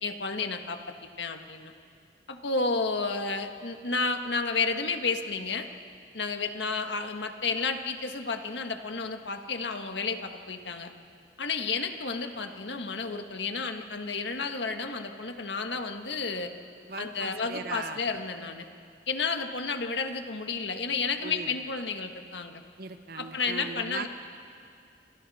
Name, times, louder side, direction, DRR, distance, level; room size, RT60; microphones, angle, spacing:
voice 1, 0.0-1.7 2.3-5.7 6.1-10.9 11.4-16.5 17.0-18.6 19.1-22.6 23.2-24.1, left 4 dB, 80° left, 5 dB, 1.6 m, -31 dB
voice 2, 16.9-18.0 21.2-21.5 22.8-24.1, right 4 dB, 60° right, 7 dB, 1.2 m, -38 dB
29.5 x 26.5 x 4.3 m, 2.3 s
head